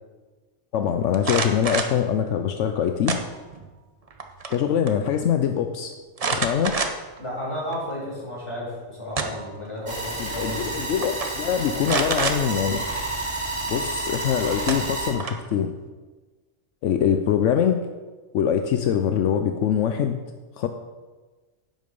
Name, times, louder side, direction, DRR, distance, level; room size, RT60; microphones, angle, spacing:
voice 1, 0.7-3.2 4.5-5.9 6.3-6.8 10.2-12.8 13.7-15.7 16.8-17.8 18.3-20.2 20.6-20.7, left 8 dB, 80° left, 7 dB, 0.9 m, -23 dB
sound 1, 1.1-2.0 3.1-3.7 4.1-4.6 4.9-5.0 6.2-7.2 7.7-7.8 8.8-9.6 10.6-10.7 11.0-11.3 11.8-12.4 14.1-14.2 14.7-15.5, right 4 dB, 35° right, 0.8 m, -27 dB
voice 2, 7.2-10.8, left 1 dB, 25° left, -7 dB, 4.0 m, -33 dB
sound 2, 9.9-15.1, right 2 dB, 70° right, 2.3 m, -30 dB
10.5 x 7.7 x 5.4 m, 1.3 s
omnidirectional pair, 1.3 m